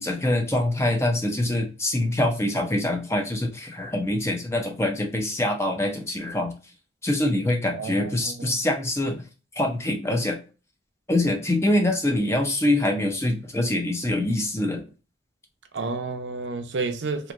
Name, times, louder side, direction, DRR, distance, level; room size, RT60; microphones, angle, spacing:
voice 1, 0.0-6.5 7.0-9.2 9.6-10.4 11.1-14.8, left 1 dB, 15° left, 0.5 m, -24 dB
voice 2, 7.7-8.6 15.7-17.3, right 3 dB, 85° right, 0.5 m, -31 dB
3.0 x 2.5 x 2.4 m
head